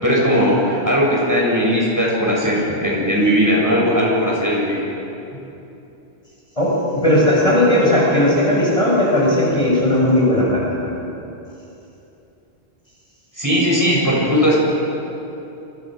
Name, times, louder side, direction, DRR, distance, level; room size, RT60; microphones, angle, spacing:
voice 1, 0.0-4.8 13.4-14.6, equal, 15° right, -4 dB, 7.5 m, -18 dB
voice 2, 6.6-10.9, left 1 dB, 30° left, -5 dB, 6.9 m, -16 dB
28.0 x 28.0 x 6.5 m, 2.9 s
omnidirectional pair, 1.2 m